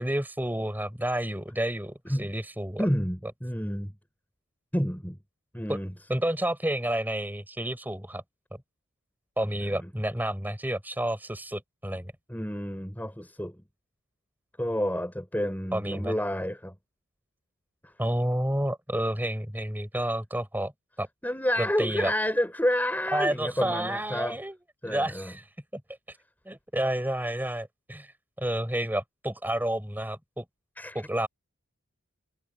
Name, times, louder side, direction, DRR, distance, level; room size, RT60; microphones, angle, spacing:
voice 1, 0.0-2.9 5.7-5.8 6.1-8.2 9.4-12.1 15.7-16.1 18.0-20.7 21.0-21.1 21.6-22.1 23.1-24.6 24.8-25.5 25.7-25.8 26.1-26.2 26.4-28.1 28.4-30.4 30.9-31.3, right 1 dB, 10° right, 4.8 m, -30 dB
voice 2, 2.8-3.9 4.7-5.2 5.5-5.9 9.8-9.9 12.3-13.6 14.6-16.7 17.8-17.9 21.2-24.4 24.8-25.3 30.8-31.0, equal, 10° left, 5.9 m, -29 dB
head